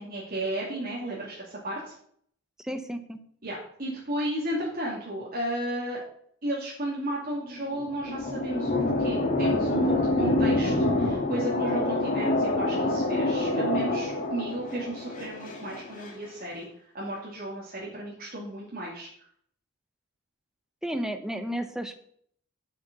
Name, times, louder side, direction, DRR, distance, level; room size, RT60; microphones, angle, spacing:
voice 1, 0.0-1.9 3.4-6.0 6.4-16.6 16.9-19.1, right 1 dB, 40° right, -5 dB, 2.7 m, -34 dB
voice 2, 2.6-3.2 20.8-22.0, equal, 5° right, 8 dB, 0.9 m, -32 dB
sound 1, 7.6-16.1, left 2 dB, 40° left, 2.0 m, -26 dB
8.7 x 6.7 x 6.8 m, 0.63 s
head